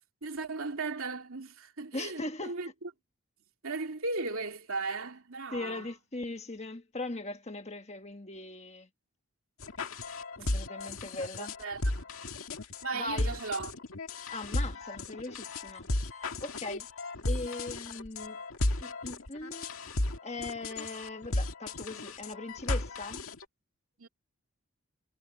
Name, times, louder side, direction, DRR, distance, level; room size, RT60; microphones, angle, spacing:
voice 1, 0.2-2.7 3.6-5.9 10.4-10.5 11.4-12.1 12.8-13.7 24.0-24.1, right 3 dB, 75° right, 2.6 m, -36 dB
voice 2, 1.9-2.6 5.5-8.9 10.4-11.5 12.9-13.3 14.3-15.9 16.1-16.9 17.2-18.4 18.8-19.7 20.2-23.2, left 2 dB, 30° left, 1.5 m, -39 dB
sound 1, 9.6-23.4, left 2 dB, 75° left, 1.9 m, -35 dB
head